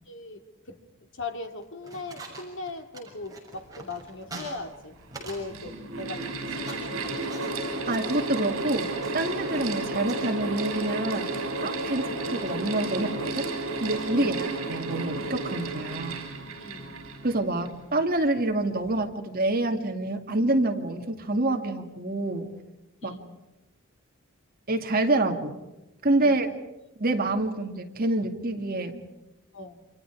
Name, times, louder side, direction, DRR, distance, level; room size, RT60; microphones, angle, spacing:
voice 1, 0.1-0.4 0.7-0.8 1.1-4.9 5.2-7.5 14.1-14.4 16.6-17.1 23.0-23.4 26.2-26.5 29.5-29.8, left 3 dB, 60° left, 5 dB, 2.5 m, -39 dB
sound 1, 1.5-5.5 5.7-10.5 11.5-13.1 14.0-14.3, right 2 dB, 15° right, 6.8 m, -45 dB
Mechanical fan, 4.2-4.3 5.2-17.8, right 2 dB, 65° right, 6.0 m, -32 dB
voice 2, 7.9-11.3 11.6-13.4 13.8-16.2 17.2-22.5 23.0-23.1 24.7-25.5 26.0-26.5 27.0-29.0, right 2 dB, 45° right, 4 dB, 2.4 m, -27 dB
29.0 x 26.5 x 4.8 m, 1.0 s
head